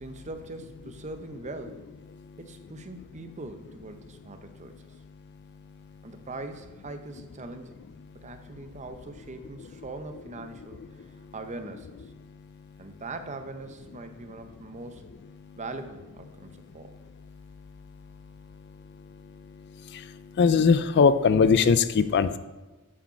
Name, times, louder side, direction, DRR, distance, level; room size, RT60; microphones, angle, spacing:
voice 1, 0.0-1.9 2.4-4.8 6.0-7.8 8.2-12.1 12.8-15.1 15.5-17.0, right 2 dB, 30° right, 8 dB, 0.7 m, -41 dB
voice 2, 20.4-22.4, left 5 dB, 50° left, 13 dB, 0.4 m, -20 dB
8.4 x 5.1 x 5.7 m, 1.1 s
head